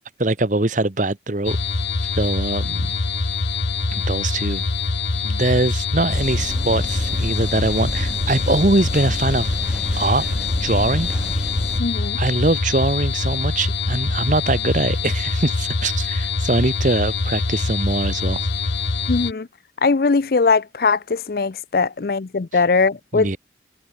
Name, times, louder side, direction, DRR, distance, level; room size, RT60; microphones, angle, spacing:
voice 1, 0.2-1.6 2.1-3.0 3.9-4.6 5.2-9.6 10.0-10.3 10.6-11.1 12.2-18.5 23.1-23.4, right 2 dB, 45° right, 1.2 m, -22 dB
sound 1, 1.4-19.3, left 4 dB, 70° left, 1.2 m, -24 dB
sound 2, 6.1-11.8, equal, 5° right, 1.8 m, -31 dB
voice 2, 11.8-12.2 19.1-19.5 19.8-23.4, left 4 dB, 50° left, 0.5 m, -20 dB
head